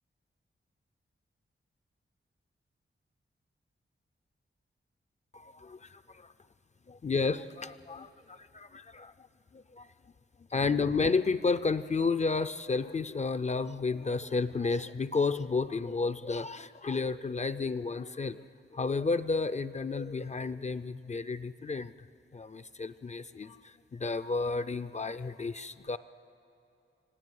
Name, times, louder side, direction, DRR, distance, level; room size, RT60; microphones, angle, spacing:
voice 1, 5.3-6.3 6.9-9.1 9.5-9.9 10.5-18.4 18.7-21.9 22.3-26.0, left 4 dB, 35° left, 13 dB, 0.4 m, -32 dB
25.5 x 16.5 x 9.2 m, 2.8 s
wide cardioid pair, 160°, 21 cm